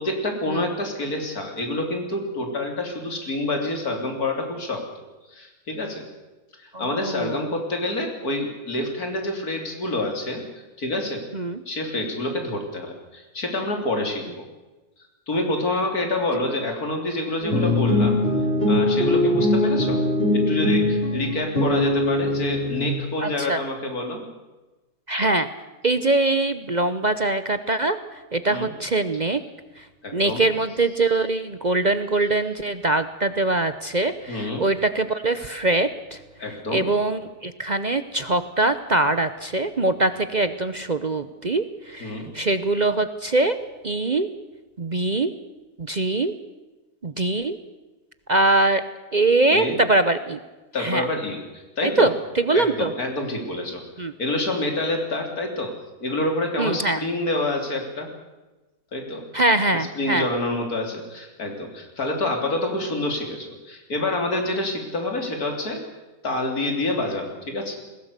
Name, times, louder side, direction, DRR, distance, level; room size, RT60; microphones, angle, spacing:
voice 1, 0.0-4.8 5.3-6.0 6.6-10.4 10.8-11.2 11.7-14.3 15.3-18.2 18.6-20.0 20.3-24.3 28.5-28.7 30.0-30.5 34.3-34.6 36.4-36.9 42.0-42.3 49.5-49.8 50.7-52.1 52.5-53.8 54.2-55.7 56.0-58.1 58.9-59.2 59.7-65.8 66.2-67.8, left 2 dB, 80° left, 3 dB, 3.9 m, -27 dB
voice 2, 6.7-7.5 11.3-11.6 23.2-23.6 25.1-25.5 25.8-29.4 29.8-29.9 30.1-36.2 36.7-43.6 43.8-44.3 44.8-45.3 45.8-46.3 47.0-47.6 48.3-48.8 49.1-50.4 50.8-51.1 51.8-52.9 54.0-54.1 56.6-57.0 59.3-60.3, right 2 dB, 35° right, 11 dB, 0.9 m, -23 dB
sound 1, 17.4-22.9, left 1 dB, 40° left, 5.1 m, -21 dB
21.0 x 17.0 x 8.2 m, 1.1 s
omnidirectional pair, 1.6 m